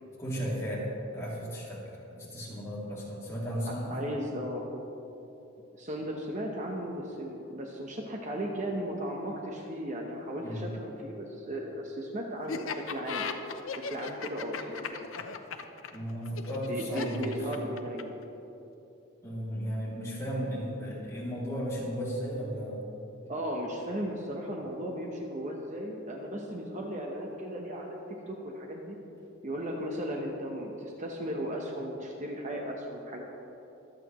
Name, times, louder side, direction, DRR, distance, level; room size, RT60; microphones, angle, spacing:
voice 1, 0.0-4.0 10.4-10.7 15.9-17.4 19.2-22.8, equal, 15° left, -7 dB, 2.7 m, -35 dB
voice 2, 3.7-4.6 5.7-13.3 13.7-14.8 16.7-18.2 23.3-29.0 29.4-33.2, equal, 35° right, 0 dB, 1.0 m, -36 dB
Laughter, 12.5-18.2, left 5 dB, 70° left, 0.7 m, -37 dB
24.0 x 8.3 x 3.1 m, 2.9 s
head